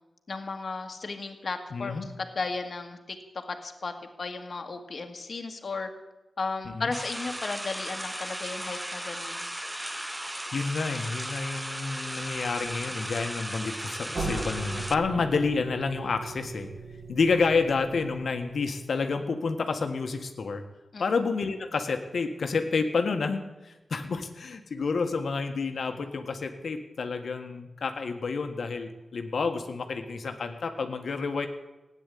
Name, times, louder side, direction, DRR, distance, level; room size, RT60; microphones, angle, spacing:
voice 1, 0.3-3.9 4.2-5.9 6.4-9.5 20.9-21.1, left 3 dB, 45° left, 5 dB, 1.9 m, -35 dB
voice 2, 1.7-2.1 6.6-6.9 10.5-16.7 17.1-20.6 21.0-31.5, left 4 dB, 70° left, 6 dB, 1.6 m, -29 dB
sound 1, 6.9-14.9, right 1 dB, 5° right, 0.6 m, -36 dB
sound 2, 14.1-18.9, right 3 dB, 45° right, 3.6 m, -38 dB
17.0 x 10.0 x 8.5 m, 1.1 s
wide cardioid pair, 165°, 0 cm